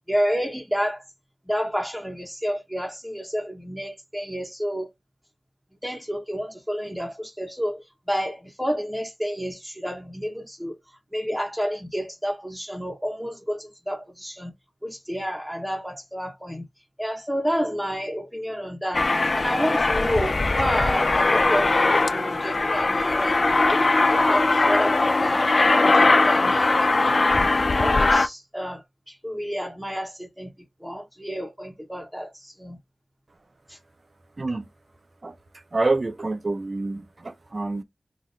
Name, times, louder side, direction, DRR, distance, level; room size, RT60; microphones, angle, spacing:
voice 1, 0.1-1.0 1.5-4.9 5.8-14.5 14.8-16.6 17.0-25.5 25.8-27.5 27.8-32.8 33.7-33.8, equal, ahead, 0.7 m, -30 dB
Aircraft, 18.9-28.3, left 3 dB, 55° left, 0.3 m, -20 dB
voice 2, 34.4-34.7 35.2-35.4 35.7-37.8, right 3 dB, 45° right, 0.5 m, -27 dB
3.9 x 2.3 x 3.0 m
wide cardioid pair, 85°, 0 cm